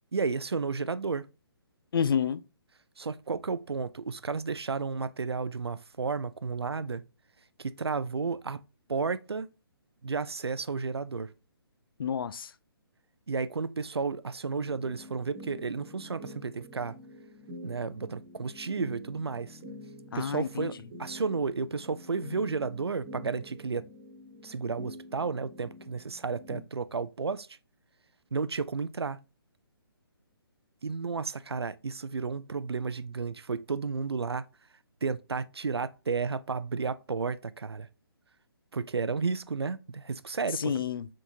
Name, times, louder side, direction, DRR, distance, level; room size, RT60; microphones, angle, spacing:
voice 1, 0.1-1.3 3.0-7.0 7.6-8.6 8.9-9.5 10.0-11.3 13.3-17.0 17.6-19.6 20.1-23.8 24.4-27.5 28.3-29.2 30.8-34.4 35.0-37.9 38.7-40.8, right 4 dB, 85° right, 0.4 m, -32 dB
voice 2, 1.9-2.4 12.0-12.5 20.1-20.7 40.5-41.1, left 7 dB, 60° left, 0.4 m, -29 dB
sound 1, 14.6-26.6, left 1 dB, 30° right, 1.7 m, -47 dB
4.5 x 3.6 x 2.7 m
figure-of-eight pair, 140°, 13 cm